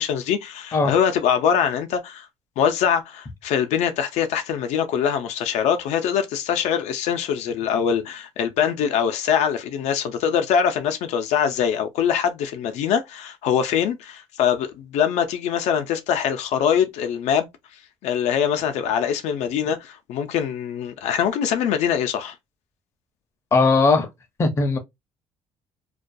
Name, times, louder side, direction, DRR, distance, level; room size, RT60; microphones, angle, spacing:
voice 1, 0.0-2.3 2.6-17.5 18.0-22.3, left 8 dB, 85° left, 0.5 m, -23 dB
voice 2, 23.5-24.1 24.4-24.8, left 3 dB, 25° left, 0.5 m, -18 dB
2.3 x 2.2 x 2.5 m
cardioid pair, 180°, 11 cm